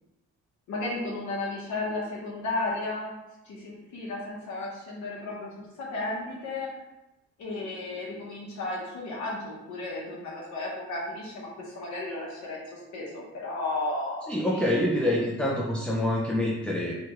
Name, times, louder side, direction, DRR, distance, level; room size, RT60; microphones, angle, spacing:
voice 1, 0.7-3.2 3.4-6.7 7.4-14.6, left 2 dB, 70° left, -4 dB, 0.8 m, -34 dB
voice 2, 14.3-17.1, left 1 dB, 5° left, -3 dB, 0.3 m, -26 dB
2.9 x 2.2 x 2.8 m, 0.99 s
cardioid pair, 90°, 30 cm